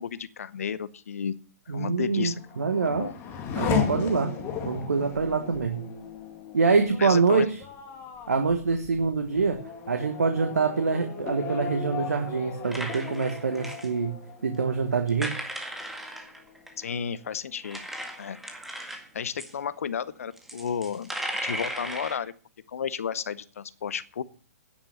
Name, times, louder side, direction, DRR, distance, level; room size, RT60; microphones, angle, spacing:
voice 1, 0.0-1.3 1.7-3.1 7.0-7.5 16.8-17.8 18.2-18.4 19.1-21.1 21.4-22.3 22.7-24.2, left 7 dB, 60° left, 16 dB, 0.9 m, -32 dB
voice 2, 1.7-3.1 3.5-4.3 4.6-5.9 6.5-7.6 8.3-14.2 14.4-15.3, right 4 dB, 70° right, 6 dB, 1.4 m, -25 dB
Race car auto racing / Accelerating revving vroom, 2.2-15.4 15.8-16.5, left 7 dB, 25° left, 2.3 m, -35 dB
sound 1, 12.6-13.9 15.1-16.9 17.6-19.1 19.4-19.5 20.4-22.2, right 1 dB, ahead, 1.9 m, -36 dB
10.0 x 9.0 x 6.8 m, 0.40 s
figure-of-eight pair, 120°, 9 cm